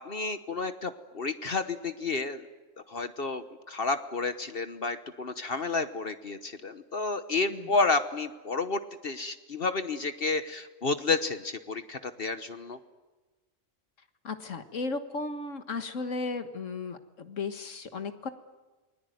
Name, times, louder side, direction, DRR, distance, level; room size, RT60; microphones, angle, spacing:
voice 1, 0.0-2.5 2.9-12.8, left 3 dB, 50° left, 10 dB, 1.3 m, -31 dB
voice 2, 14.2-18.3, left 3 dB, 75° left, 8 dB, 1.9 m, -35 dB
29.0 x 21.5 x 9.4 m, 1.2 s
omnidirectional pair, 1.3 m